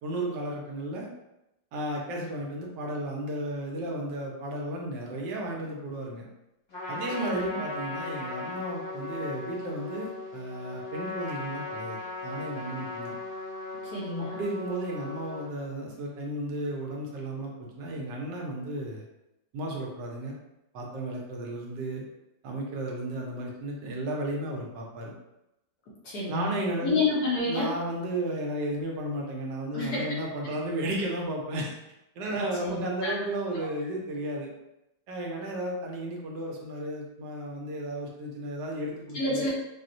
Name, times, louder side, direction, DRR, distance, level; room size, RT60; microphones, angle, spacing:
voice 1, 0.0-1.1 1.7-6.3 6.9-13.1 14.2-19.1 19.5-20.4 20.7-22.0 22.4-25.1 26.3-27.0 27.5-31.7 32.2-34.5 35.1-39.5, right 1 dB, 75° right, -1 dB, 1.3 m, -34 dB
Trumpet, 6.7-15.5, left 3 dB, 85° left, 2.0 m, -37 dB
voice 2, 7.2-7.6 13.8-14.4 26.0-26.5 26.8-27.7 29.7-30.0 32.3-33.2 39.1-39.5, left 3 dB, 60° left, -6 dB, 1.3 m, -29 dB
4.2 x 2.1 x 2.5 m, 0.91 s
omnidirectional pair, 2.0 m